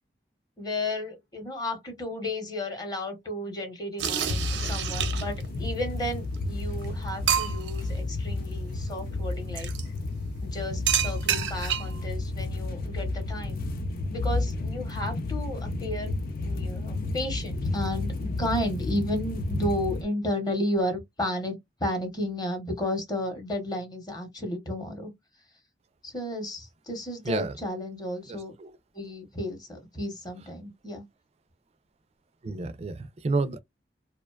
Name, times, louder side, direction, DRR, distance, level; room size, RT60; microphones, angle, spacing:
voice 1, 0.6-9.7 10.4-13.6 14.1-25.1 26.0-28.5 28.9-31.0, left 1 dB, 25° left, 0.8 m, -33 dB
sound 1, 4.0-5.5 6.4-6.5 6.8-6.9 7.3-7.8 9.5-9.8 10.9-12.0, right 9 dB, 80° right, 0.6 m, -28 dB
sound 2, 4.3-20.0, left 2 dB, 55° left, 0.4 m, -31 dB
voice 2, 28.3-28.7 32.4-33.6, right 3 dB, 35° right, 0.3 m, -30 dB
2.4 x 2.2 x 2.3 m
head